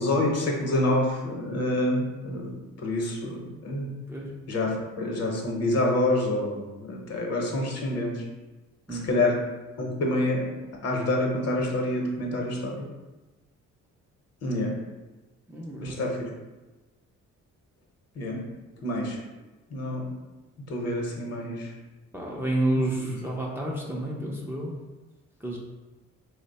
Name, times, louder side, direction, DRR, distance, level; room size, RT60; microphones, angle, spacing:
voice 1, 0.0-2.5 2.8-3.9 4.5-8.2 8.9-9.4 9.8-10.5 10.8-12.8 14.4-14.7 15.8-16.3 18.2-18.4 18.8-19.2 19.7-20.1 20.7-21.7 22.8-23.1, left 1 dB, 55° left, 0 dB, 0.9 m, -27 dB
voice 2, 8.9-9.2 15.5-16.0 22.1-24.7 25.4-25.6, right 1 dB, 10° right, -3 dB, 0.5 m, -30 dB
3.0 x 2.1 x 4.1 m, 1.1 s
cardioid pair, 90°, 30 cm